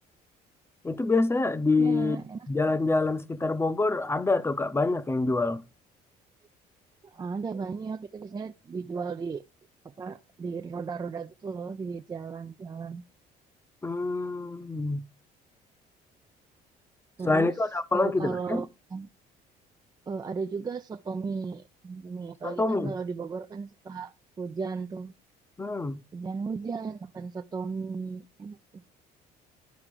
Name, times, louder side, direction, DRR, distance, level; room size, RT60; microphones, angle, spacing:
voice 1, 0.8-2.2 2.5-5.6 13.8-15.0 17.2-18.6 22.4-22.9 25.6-26.0, left 3 dB, 15° left, 0.7 m, -26 dB
voice 2, 1.8-2.5 7.0-9.4 9.8-13.0 17.2-17.6 17.9-19.1 20.1-25.1 26.1-28.8, right 5 dB, 25° right, 0.4 m, -35 dB
11.5 x 4.9 x 4.8 m
cardioid pair, 110°, 17 cm